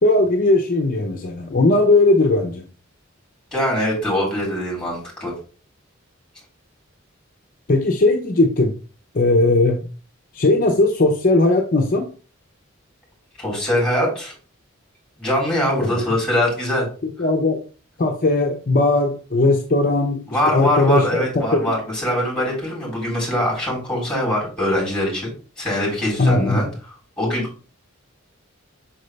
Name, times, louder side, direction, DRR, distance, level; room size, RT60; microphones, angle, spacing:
voice 1, 0.0-2.6 7.7-8.7 9.1-9.8 10.3-12.1 15.8-16.0 17.0-17.6 18.0-21.3 21.5-21.7 26.2-26.6, left 2 dB, 45° left, 2 dB, 0.8 m, -18 dB
voice 2, 3.5-5.3 13.4-14.3 15.2-16.9 20.3-25.3 25.6-26.7 27.2-27.5, left 1 dB, 5° left, -4 dB, 3.7 m, -22 dB
5.9 x 5.4 x 3.2 m, 0.37 s
head